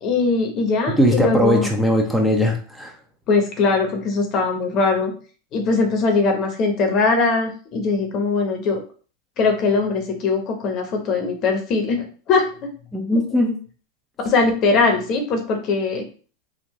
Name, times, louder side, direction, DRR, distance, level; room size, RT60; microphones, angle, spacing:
voice 1, 0.0-1.7 3.3-5.1 5.5-8.8 9.4-12.7 14.2-16.0, left 4 dB, 45° left, 4 dB, 0.9 m, -21 dB
voice 2, 0.9-3.0 12.9-13.6, equal, 5° right, 1 dB, 0.7 m, -19 dB
3.6 x 2.4 x 3.0 m, 0.40 s
hypercardioid pair, 100°, 0 cm